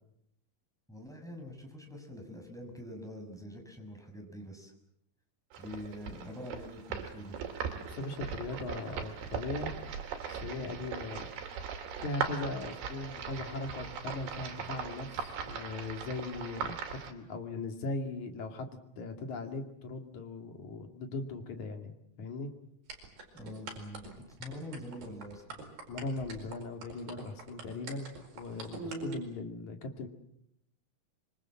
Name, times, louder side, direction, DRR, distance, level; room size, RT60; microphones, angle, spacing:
voice 1, 0.9-4.7 5.6-7.3 23.3-25.6, equal, ahead, 2 dB, 5.8 m, -45 dB
sound 1, 5.5-17.1, right 6 dB, 80° right, 4.6 m, -39 dB
voice 2, 7.9-9.7 10.3-11.3 12.0-22.5 25.9-30.1, left 2 dB, 50° left, 5 dB, 3.6 m, -39 dB
sound 2, 22.9-29.1, right 3 dB, 65° right, 6.4 m, -43 dB
26.5 x 24.0 x 7.4 m, 0.76 s
omnidirectional pair, 4.5 m